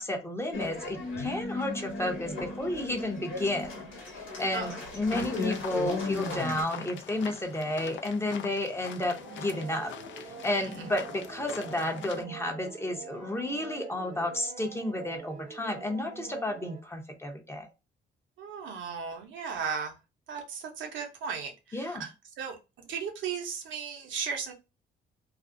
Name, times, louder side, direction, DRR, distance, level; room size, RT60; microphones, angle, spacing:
voice 1, 0.0-3.9 4.4-17.7 21.7-22.0, left 1 dB, 10° left, 0.6 m, -32 dB
sound 1, 0.5-6.6, left 3 dB, 85° left, 1.0 m, -36 dB
sound 2, 5.1-12.2, left 9 dB, 70° left, 0.4 m, -44 dB
sound 3, 9.2-16.8, right 6 dB, 40° right, 0.6 m, -46 dB
voice 2, 18.4-19.9 20.3-22.1 22.4-22.6 22.9-24.5, right 6 dB, 75° right, 0.7 m, -36 dB
2.4 x 2.0 x 2.5 m
cardioid pair, 90°, 20 cm